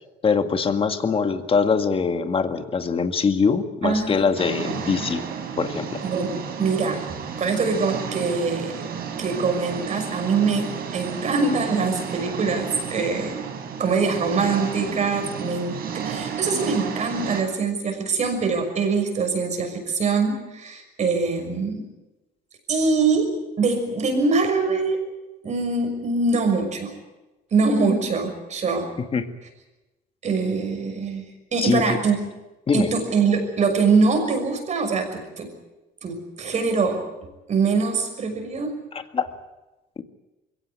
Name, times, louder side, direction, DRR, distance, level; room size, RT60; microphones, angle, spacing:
voice 1, 0.2-5.2 5.6-6.0 29.1-29.3 31.6-32.0 32.7-32.9 39.1-39.3 40.0-40.1, left 5 dB, 35° left, 8 dB, 1.9 m, -22 dB
voice 2, 3.8-4.3 6.0-8.8 9.2-13.4 13.8-21.8 22.7-25.0 25.4-26.9 27.5-28.9 30.2-32.2 32.7-35.5 36.0-37.0 37.5-38.8, right 4 dB, 45° right, 4 dB, 6.2 m, -23 dB
sound 1, 4.4-17.4, right 7 dB, 65° right, 4.3 m, -32 dB
22.5 x 17.0 x 9.7 m, 1.1 s
cardioid pair, 110°, 17 cm